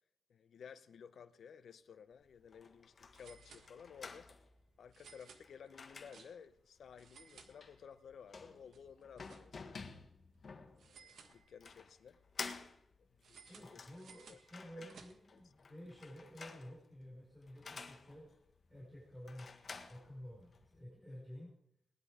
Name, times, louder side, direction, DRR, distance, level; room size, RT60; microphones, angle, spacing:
voice 1, 0.3-4.3 4.8-9.8 10.8-12.2 13.0-14.0 14.3-14.4 14.8-14.9 15.3-15.5, left 7 dB, 75° left, 0.8 m, -56 dB
sound 1, 2.1-2.2 2.4-2.5 3.1-4.2 4.9-6.6 6.9-8.1 8.4-9.8 10.8-11.9 13.2-15.5, right 5 dB, 85° right, 1.6 m, -61 dB
sound 2, 2.2-20.8, left 4 dB, 45° left, 1.6 m, -53 dB
voice 2, 13.5-18.3 18.7-21.5, equal, 15° right, 5.0 m, -52 dB
19.5 x 11.0 x 5.0 m
wide cardioid pair, 135°, 0 cm